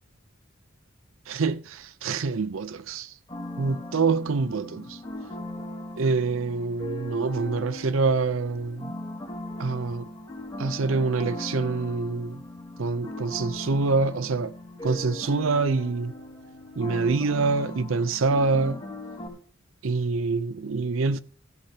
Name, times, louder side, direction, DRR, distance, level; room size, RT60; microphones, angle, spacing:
voice 1, 1.3-3.1 3.6-5.0 6.0-8.9 9.6-10.1 10.6-12.4 12.8-14.5 14.8-16.1 16.8-18.8 19.8-21.2, right 4 dB, 75° right, 0.6 m, -26 dB
sound 1, 3.3-19.3, left 1 dB, 20° left, 3.4 m, -39 dB
15.5 x 13.5 x 2.8 m
head